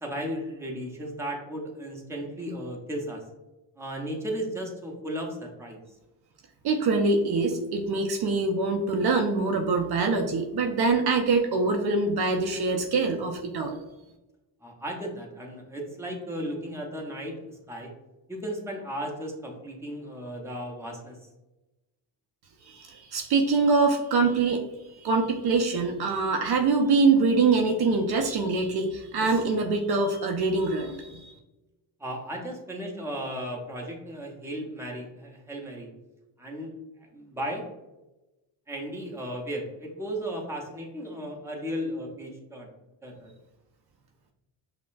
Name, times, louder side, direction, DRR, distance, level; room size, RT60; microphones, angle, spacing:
voice 1, 0.0-3.2 3.8-5.8 14.6-17.9 18.3-21.2 32.0-35.9 36.4-37.6 38.7-42.7 43.0-43.3, equal, 5° right, -1 dB, 0.8 m, -35 dB
voice 2, 6.6-13.8 22.6-24.6 25.0-31.4, right 3 dB, 55° right, 3 dB, 0.6 m, -24 dB
5.4 x 2.2 x 2.5 m, 1.0 s
cardioid pair, 80°, 48 cm